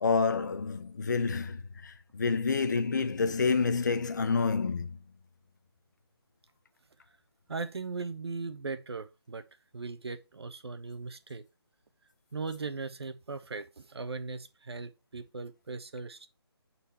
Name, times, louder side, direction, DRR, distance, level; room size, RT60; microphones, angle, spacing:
voice 1, 0.0-5.0, left 4 dB, 45° left, 0.7 m, -28 dB
voice 2, 7.5-9.4 9.7-11.4 12.3-16.3, right 4 dB, 75° right, 1.0 m, -38 dB
7.0 x 4.3 x 4.2 m
hypercardioid pair, 170°, 14 cm